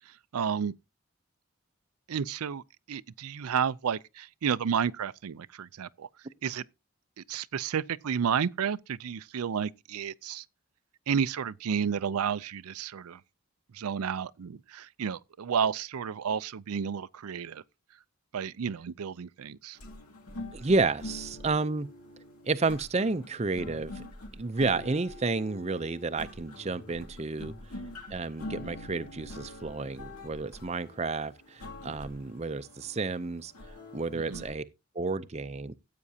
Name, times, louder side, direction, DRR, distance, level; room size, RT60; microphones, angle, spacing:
voice 1, 0.1-0.7 2.1-2.6 2.9-6.1 6.4-6.6 7.2-10.4 11.1-13.2 13.7-17.6 18.3-19.8 34.1-34.4, right 7 dB, 85° right, 0.5 m, -31 dB
sound 1, 19.7-34.5, left 1 dB, 85° left, 2.4 m, -45 dB
voice 2, 20.5-21.9 22.4-27.8 28.1-34.6 34.9-35.7, right 3 dB, 30° right, 0.5 m, -31 dB
14.5 x 8.4 x 2.8 m
head